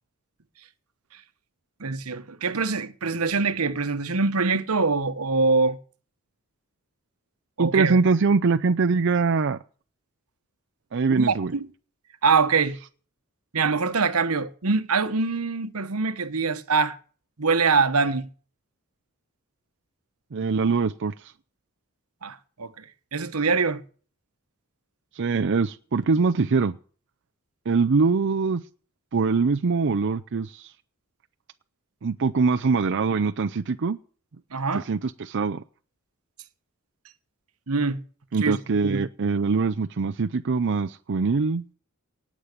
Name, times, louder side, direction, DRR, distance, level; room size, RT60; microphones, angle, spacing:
voice 1, 1.8-5.8 7.6-8.0 11.1-11.7 12.2-12.8 13.5-17.0 17.4-18.3 22.2-22.8 23.1-23.8 34.5-34.8 37.7-38.0 38.4-38.6 38.8-39.0, right 4 dB, 85° right, 1.2 m, -24 dB
voice 2, 7.6-9.6 10.9-11.5 20.3-21.1 25.2-26.8 27.7-28.6 29.1-30.7 32.0-34.0 34.7-35.6 38.3-41.6, right 4 dB, 55° right, 0.5 m, -23 dB
18.0 x 7.4 x 6.7 m
head